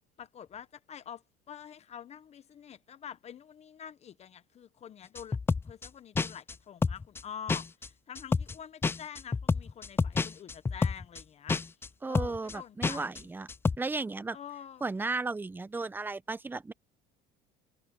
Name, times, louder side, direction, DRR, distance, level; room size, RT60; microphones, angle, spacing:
voice 1, 0.2-5.4 5.6-11.6 12.1-13.1 14.3-14.8, left 8 dB, 35° left, 1.0 m, -46 dB
sound 1, 5.2-5.9 6.2-6.5 6.8-7.2 7.5-7.9 8.2-8.5 8.8-11.2 11.5-11.9 12.1-12.5 12.8-13.2 13.5-13.8, left 4 dB, 15° left, 0.4 m, -29 dB
voice 2, 12.0-13.5 13.8-14.4 14.8-16.7, right 3 dB, 10° right, 0.7 m, -34 dB
cardioid pair, 125°, 18 cm